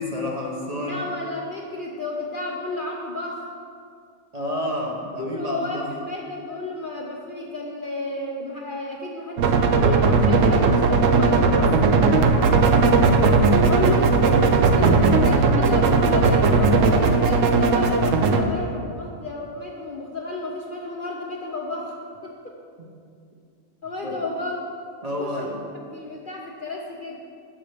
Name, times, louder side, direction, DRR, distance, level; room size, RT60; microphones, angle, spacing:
voice 1, 0.0-1.0 4.3-5.9 22.8-22.9 24.0-24.1 25.0-25.6, left 1 dB, 35° right, -2 dB, 0.8 m, -30 dB
voice 2, 0.8-3.5 5.2-12.0 12.7-12.9 13.6-22.6 23.8-24.7 25.2-25.5 25.9-27.2, left 2 dB, 50° left, -1 dB, 0.6 m, -32 dB
sound 1, 9.4-18.4, right 4 dB, 70° right, 0.9 m, -17 dB
14.0 x 5.3 x 3.4 m, 2.3 s
omnidirectional pair, 1.5 m